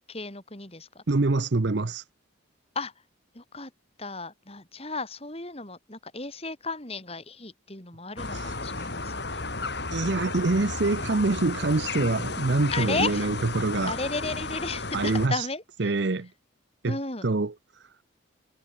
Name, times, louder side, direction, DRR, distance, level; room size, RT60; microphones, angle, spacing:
voice 1, 0.1-1.0 2.7-2.9 3.3-3.7 4.0-9.4 12.7-13.3 13.9-15.9 16.8-17.3, left 3 dB, 30° left, 4.7 m, -34 dB
voice 2, 1.1-2.0 9.9-13.9 14.9-15.4 15.8-16.3 16.8-17.0 17.2-17.5, right 3 dB, 55° right, 0.7 m, -25 dB
sound 1, 8.2-15.3, left 3 dB, 55° left, 3.2 m, -33 dB
head